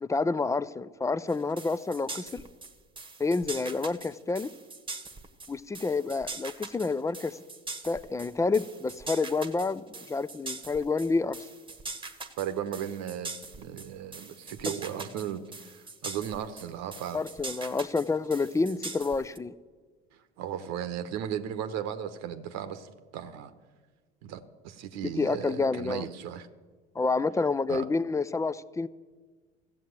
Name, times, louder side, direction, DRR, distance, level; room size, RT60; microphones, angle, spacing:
voice 1, 0.0-2.4 3.2-4.5 5.5-7.4 7.8-11.4 17.1-19.5 25.2-26.1 27.0-28.9, left 3 dB, 10° left, 0.3 m, -29 dB
sound 1, 1.3-19.4, right 3 dB, 15° right, 1.2 m, -42 dB
voice 2, 12.4-17.2 20.1-23.5 24.2-26.5 27.7-27.9, right 9 dB, 55° right, 0.9 m, -36 dB
14.0 x 7.4 x 9.2 m
hypercardioid pair, 65°, 32 cm